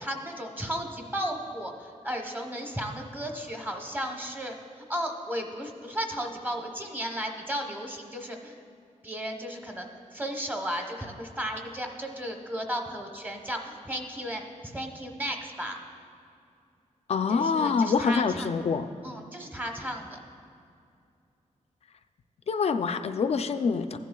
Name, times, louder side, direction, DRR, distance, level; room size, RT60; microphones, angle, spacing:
voice 1, 0.0-8.6 9.0-15.8 17.3-18.5 19.0-20.2, equal, 15° right, 3 dB, 0.9 m, -34 dB
voice 2, 17.1-18.9 22.5-24.0, left 5 dB, 55° left, 8 dB, 0.4 m, -25 dB
15.5 x 10.0 x 2.3 m, 2.4 s
wide cardioid pair, 135°, 13 cm